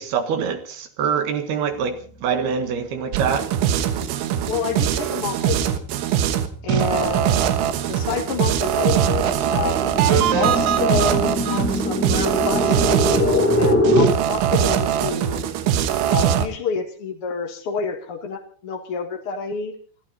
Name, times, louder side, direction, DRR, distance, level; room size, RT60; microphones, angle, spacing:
voice 1, 0.0-3.5, right 7 dB, 65° right, 8 dB, 3.2 m, -24 dB
sound 1, 3.1-16.5, right 10 dB, 90° right, 3.7 m, -21 dB
voice 2, 4.5-5.8 6.6-7.5 7.9-15.4 16.0-19.7, left 5 dB, 50° left, 2 dB, 1.8 m, -28 dB
sound 2, 4.5-4.7 5.1-14.0, left 1 dB, 10° left, 0.6 m, -25 dB
28.5 x 12.5 x 4.1 m, 0.42 s
omnidirectional pair, 5.2 m